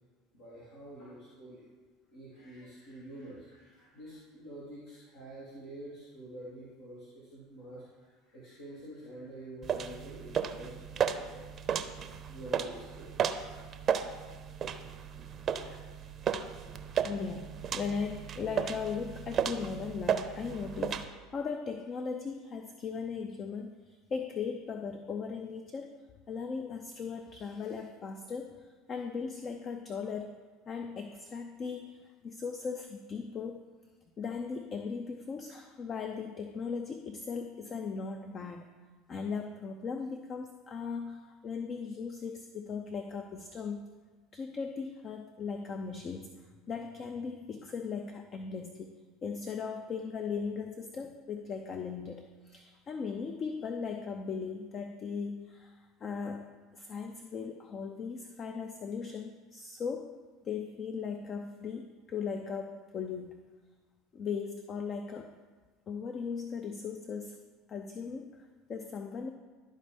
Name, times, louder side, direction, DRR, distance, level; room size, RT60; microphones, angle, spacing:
voice 1, 0.3-1.6 2.1-11.5 12.3-13.5 15.6-15.8, right 1 dB, 75° left, -9 dB, 2.2 m, -48 dB
sound 1, 9.6-21.1, right 7 dB, 40° right, 0.6 m, -34 dB
voice 2, 17.0-26.0 26.3-30.4 30.7-33.7 34.2-38.7 39.1-43.9 44.3-46.3 46.7-48.9 49.2-60.2 60.4-63.4 64.1-65.3 65.9-69.3, left 5 dB, 40° left, 5 dB, 0.5 m, -38 dB
12.0 x 4.3 x 3.4 m, 1.4 s
hypercardioid pair, 75°, 0 cm